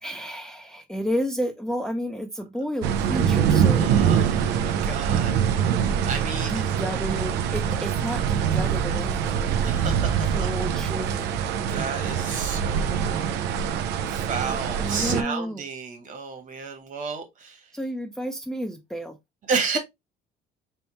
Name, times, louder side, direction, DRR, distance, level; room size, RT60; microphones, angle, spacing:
voice 1, 0.0-3.9 6.5-11.3 14.7-15.6 17.7-19.2, equal, 5° left, 0.6 m, -31 dB
sound 1, 2.8-15.2, right 8 dB, 85° right, 0.6 m, -24 dB
voice 2, 3.7-6.6 9.6-10.5 11.1-11.2 11.7-13.2 14.1-17.7 19.5-19.8, right 5 dB, 50° right, 1.5 m, -32 dB
4.1 x 3.5 x 2.9 m
cardioid pair, 110°, 17 cm